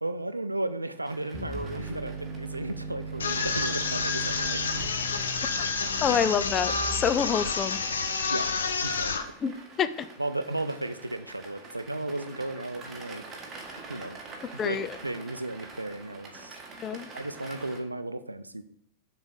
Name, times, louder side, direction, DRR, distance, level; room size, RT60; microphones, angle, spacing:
voice 1, 0.0-4.7 8.3-8.5 8.8-9.3 10.2-13.2 13.9-14.2 14.6-16.6 17.1-18.6, right 2 dB, 85° right, 11 dB, 0.5 m, -34 dB
sound 1, 1.0-17.8, right 3 dB, 25° right, 1.5 m, -47 dB
sound 2, 1.3-7.3, right 3 dB, 10° left, 2.5 m, -39 dB
sound 3, 3.2-9.2, left 4 dB, 70° left, 0.7 m, -29 dB
voice 2, 6.0-7.8 9.4-10.1 14.6-14.9 16.8-17.1, left 7 dB, 25° left, 12 dB, 0.5 m, -27 dB
7.0 x 3.9 x 6.5 m, 0.64 s
figure-of-eight pair, 90°, 0 cm